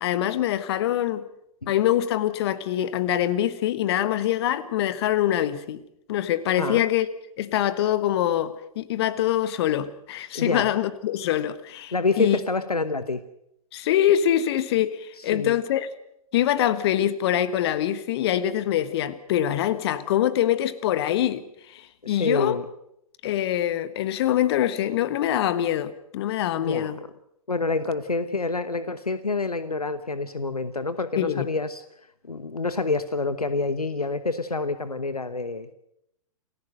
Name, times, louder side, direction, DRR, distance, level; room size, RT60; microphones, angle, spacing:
voice 1, 0.0-1.2 1.7-5.8 6.1-7.1 7.4-12.4 13.7-15.9 16.3-22.6 23.2-27.0 31.2-31.5, left 11 dB, 45° left, 15 dB, 1.4 m, -24 dB
voice 2, 10.3-10.7 11.9-13.2 15.2-15.6 22.0-22.7 26.6-27.0 27.5-31.8 32.3-35.7, left 3 dB, 85° left, 13 dB, 1.1 m, -27 dB
28.5 x 15.0 x 6.7 m, 0.78 s
figure-of-eight pair, 115°, 19 cm